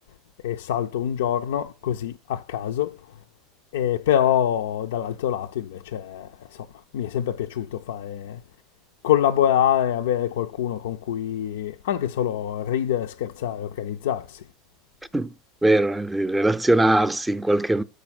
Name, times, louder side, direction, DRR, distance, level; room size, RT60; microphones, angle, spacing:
voice 1, 0.4-3.0 3.7-6.7 6.9-8.4 9.0-14.4, left 10 dB, 75° left, 0.3 m, -25 dB
voice 2, 15.6-17.8, right 1 dB, 10° right, 0.5 m, -21 dB
6.8 x 4.7 x 6.0 m
hypercardioid pair, 90°, 0 cm